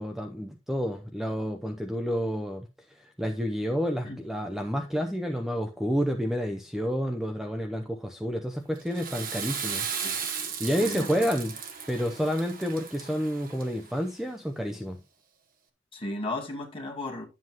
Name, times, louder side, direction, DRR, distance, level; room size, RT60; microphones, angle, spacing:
voice 1, 0.0-9.9 10.2-11.6 11.9-15.0, equal, ahead, 0.6 m, -30 dB
Water / Toilet flush, 8.8-14.0, right 6 dB, 45° right, 1.3 m, -36 dB
voice 2, 10.8-11.3 15.9-17.3, left 2 dB, 25° left, 2.1 m, -35 dB
11.0 x 7.6 x 3.0 m
head